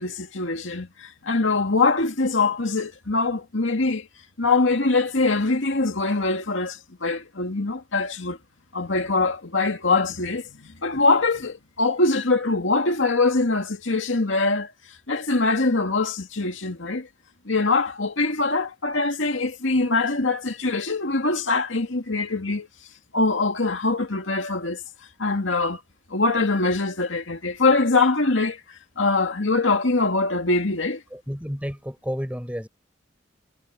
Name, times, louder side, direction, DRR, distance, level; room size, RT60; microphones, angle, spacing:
voice 1, 0.0-4.1 4.4-8.4 8.7-14.7 15.1-17.1 17.5-22.7 23.1-24.8 25.2-25.8 26.1-28.6 29.0-31.0, left 3 dB, 80° left, 2.2 m, -23 dB
voice 2, 31.1-32.7, equal, 5° right, 4.4 m, -31 dB
head